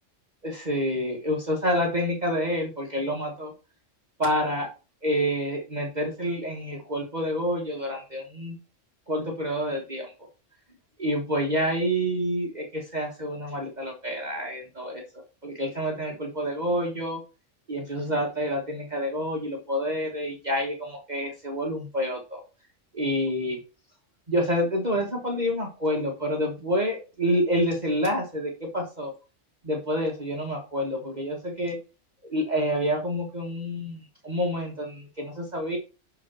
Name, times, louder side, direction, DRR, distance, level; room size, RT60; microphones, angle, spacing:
voice 1, 0.4-3.5 4.2-4.7 5.0-8.6 9.1-10.1 11.0-15.0 15.4-17.2 17.7-22.4 22.9-23.6 24.3-29.1 29.6-31.8 32.3-35.8, equal, 35° right, 0 dB, 1.7 m, -28 dB
6.3 x 5.8 x 6.1 m, 0.32 s
omnidirectional pair, 1.3 m